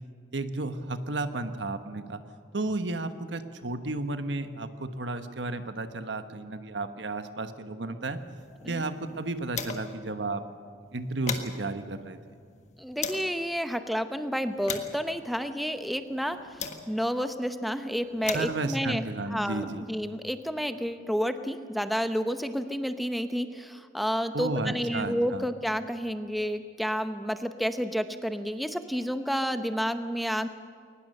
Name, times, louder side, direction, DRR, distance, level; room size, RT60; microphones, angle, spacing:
voice 1, 0.3-2.2 2.5-8.2 8.6-10.4 10.9-12.2 18.3-19.8 24.3-25.4, right 2 dB, 85° right, 9 dB, 1.3 m, -33 dB
sound 1, 8.3-10.1 10.4-10.5 10.8-13.4 14.0-17.2 17.9-20.1, left 6 dB, 40° left, 1.6 m, -40 dB
voice 2, 12.8-30.5, equal, ahead, 9 dB, 0.8 m, -30 dB
21.5 x 20.0 x 6.7 m, 2.3 s
head